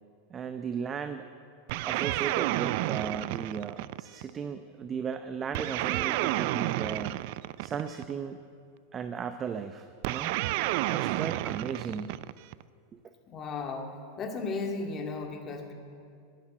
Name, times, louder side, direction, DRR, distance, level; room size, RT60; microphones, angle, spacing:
voice 1, 0.3-1.2 1.8-7.2 7.6-8.4 8.9-10.3 10.9-12.2 12.9-13.0, right 6 dB, 25° right, 9 dB, 0.6 m, -36 dB
sound 1, 1.7-4.3 5.5-8.1 10.0-12.6, right 17 dB, 60° right, 0.3 m, -30 dB
voice 2, 13.3-13.9 14.2-15.7, left 3 dB, 30° left, 3 dB, 2.2 m, -35 dB
11.5 x 11.5 x 9.1 m, 2.3 s
hypercardioid pair, 120°, 0 cm